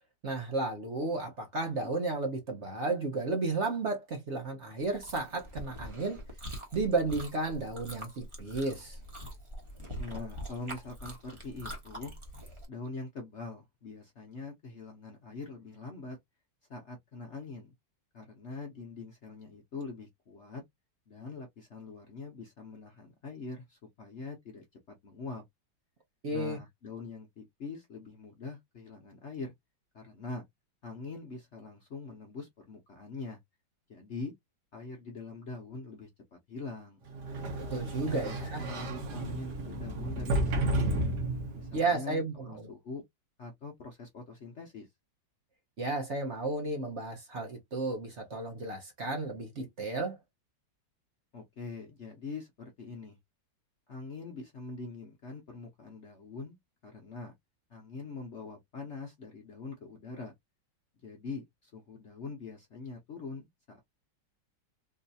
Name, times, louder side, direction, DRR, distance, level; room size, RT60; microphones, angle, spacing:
voice 1, 0.2-6.2 6.7-9.0 26.2-26.6 37.7-38.6 41.7-42.7 45.8-50.2, right 3 dB, 45° right, 1.1 m, -33 dB
Chewing mastication, 4.8-12.6, equal, 20° right, 1.1 m, -44 dB
voice 2, 10.0-12.1 12.7-16.2 16.7-17.7 18.1-20.6 21.1-25.4 26.3-29.5 29.9-30.4 30.8-33.4 33.9-34.3 34.7-37.0 38.0-41.0 41.5-43.0 43.4-44.9 51.3-53.2 53.9-56.6 56.8-57.3 57.7-60.3 61.0-63.8, left 3 dB, 55° left, 0.8 m, -43 dB
Sliding door, 37.1-41.8, right 1 dB, 65° right, 1.6 m, -32 dB
3.9 x 2.7 x 2.6 m
omnidirectional pair, 1.9 m